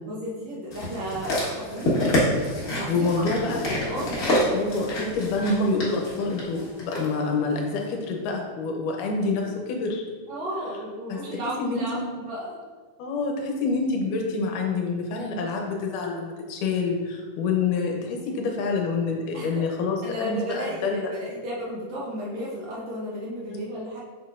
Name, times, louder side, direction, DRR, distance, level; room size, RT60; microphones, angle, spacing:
voice 1, 0.0-2.1 2.8-3.1 3.4-4.2 10.3-12.6 19.3-19.7 20.0-24.0, equal, 65° right, -5 dB, 2.0 m, -33 dB
sound 1, 0.7-7.1 7.8-7.9, left 1 dB, 50° left, 1.1 m, -27 dB
voice 2, 2.9-3.7 4.5-10.0 11.1-12.1 13.0-21.1 23.5-23.6, left 3 dB, 80° left, 1 dB, 2.2 m, -27 dB
7.0 x 5.9 x 2.4 m, 1.4 s
omnidirectional pair, 3.8 m